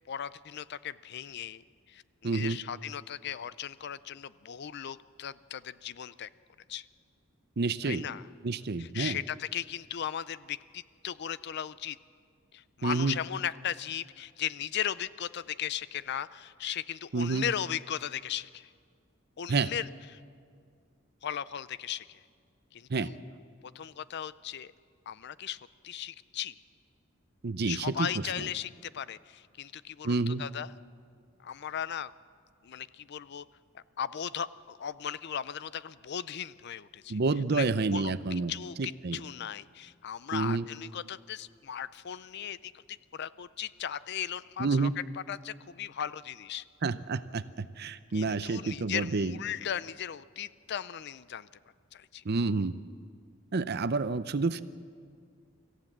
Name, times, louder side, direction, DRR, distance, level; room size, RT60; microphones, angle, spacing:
voice 1, 0.1-6.3 6.7-6.8 7.8-8.2 8.8-12.0 12.5-18.7 19.4-20.2 21.2-22.2 22.7-23.2 23.7-24.7 25.1-25.6 25.8-26.6 27.6-30.7 31.4-32.1 32.6-33.5 33.7-37.2 37.5-44.9 45.3-46.6 48.1-51.5 51.9-52.2, left 9 dB, 55° left, 17 dB, 0.5 m, -37 dB
voice 2, 2.2-2.6 7.6-8.1 8.4-9.2 12.8-13.2 17.1-17.4 19.5-19.7 22.9-23.1 27.4-28.1 28.4-28.5 30.0-30.4 37.1-38.5 38.8-39.2 40.3-40.7 44.6-45.0 46.8-49.4 52.2-52.8 53.5-54.6, right 3 dB, 55° right, 14 dB, 0.6 m, -29 dB
25.0 x 15.0 x 7.4 m, 2.2 s
head